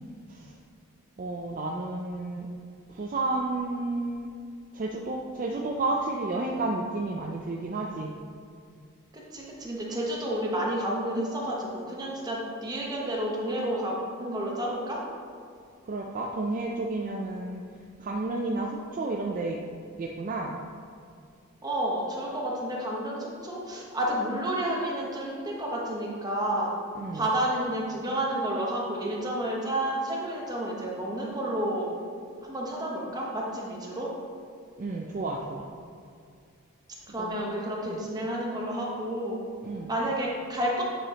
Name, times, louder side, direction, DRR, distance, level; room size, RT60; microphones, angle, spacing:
voice 1, 1.2-2.5 2.9-4.3 4.7-8.1 15.9-17.6 18.0-19.6 20.0-20.6 27.0-27.2 34.8-35.7 37.2-37.4 37.9-38.0 39.6-39.9, right 2 dB, 40° right, 0 dB, 0.4 m, -31 dB
voice 2, 9.1-15.0 21.6-26.7 27.1-31.9 32.4-34.1 37.1-39.4 39.9-40.8, right 1 dB, 20° right, -3 dB, 0.9 m, -30 dB
8.8 x 5.0 x 2.9 m, 2.2 s
head